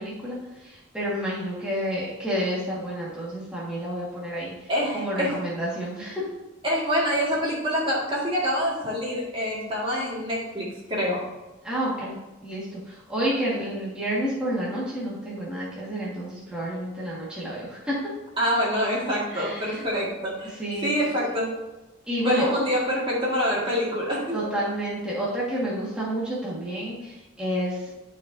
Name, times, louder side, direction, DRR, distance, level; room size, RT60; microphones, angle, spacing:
voice 1, 0.0-4.7 4.9-6.3 11.6-12.2 12.4-18.0 19.3-19.9 20.6-20.9 22.1-22.6 24.3-27.9, equal, 5° right, -8 dB, 1.8 m, -29 dB
voice 2, 4.7-5.3 6.6-11.2 18.4-20.5 20.8-21.5 22.2-24.5, equal, 30° right, -5 dB, 2.0 m, -26 dB
12.0 x 4.7 x 2.7 m, 1.1 s
head